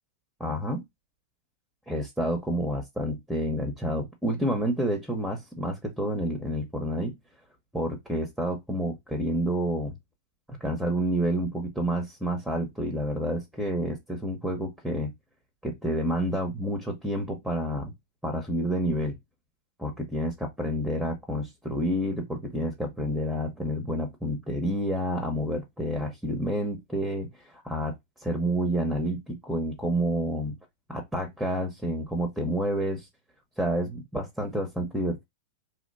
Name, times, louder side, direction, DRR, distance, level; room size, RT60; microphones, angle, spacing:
voice 1, 0.4-0.8 1.9-7.1 7.7-9.9 10.5-15.1 15.6-17.9 18.2-19.1 19.8-27.9 28.2-30.6 30.9-33.1 33.6-35.2, equal, ahead, 0.8 m, -29 dB
2.9 x 2.1 x 4.0 m
hypercardioid pair, 125°, 0 cm